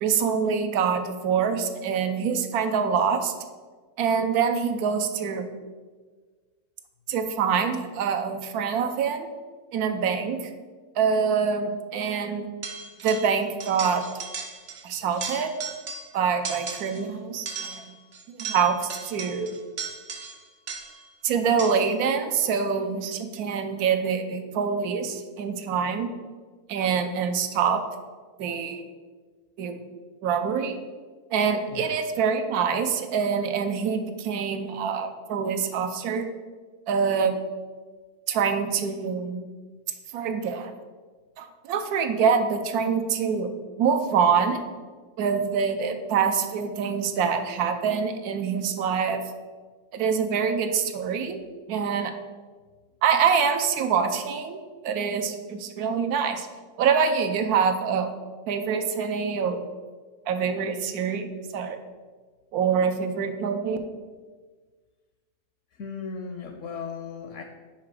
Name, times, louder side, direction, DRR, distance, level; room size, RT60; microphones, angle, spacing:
voice 1, 0.0-3.3 4.0-5.5 7.1-9.3 9.7-10.5 11.0-12.5 13.0-14.0 14.8-15.5 16.1-17.8 18.3-19.5 21.2-26.1 26.7-27.8 28.4-28.8 29.6-29.8 30.2-30.8 31.3-36.3 36.9-37.4 38.3-39.4 40.1-40.7 41.4-43.5 43.8-44.6 45.2-49.2 49.9-51.4 51.7-52.1 53.0-54.6 54.8-56.5 56.8-58.1 58.5-59.6 60.3-61.8 62.5-63.8, right 6 dB, 75° right, 7 dB, 1.1 m, -25 dB
sound 1, 12.6-13.3 13.6-14.8 15.1-16.1 16.4-17.0 17.5-21.1 21.6-22.0, right 5 dB, 55° right, 0.8 m, -37 dB
voice 2, 65.7-67.4, left 5 dB, 65° left, 5 dB, 0.8 m, -36 dB
6.0 x 4.8 x 4.8 m, 1.5 s
omnidirectional pair, 1.7 m